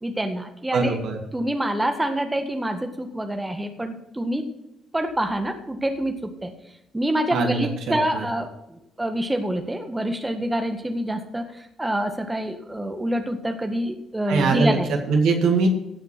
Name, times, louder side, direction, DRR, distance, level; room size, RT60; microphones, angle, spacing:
voice 1, 0.0-1.0 1.3-4.5 4.9-6.5 6.9-15.0, right 1 dB, 15° right, 5 dB, 1.7 m, -26 dB
voice 2, 0.7-1.2 7.3-8.3 14.3-14.8 15.1-15.7, right 4 dB, 65° right, 2 dB, 2.1 m, -22 dB
17.0 x 5.7 x 6.1 m, 0.86 s
hypercardioid pair, 45°, 0 cm